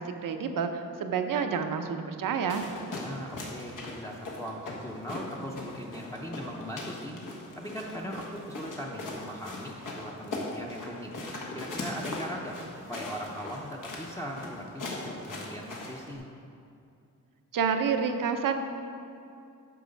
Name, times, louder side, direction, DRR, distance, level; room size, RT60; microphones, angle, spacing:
voice 1, 0.0-2.6 17.5-18.6, right 6 dB, 90° right, 6 dB, 0.7 m, -29 dB
sound 1, 2.5-16.1, left 2 dB, 75° left, 1.6 m, -40 dB
voice 2, 2.9-7.1 7.6-11.1 11.5-12.6 12.9-16.3, equal, 10° left, -3 dB, 0.7 m, -39 dB
9.5 x 6.2 x 5.2 m, 2.5 s
wide cardioid pair, 130°, 32 cm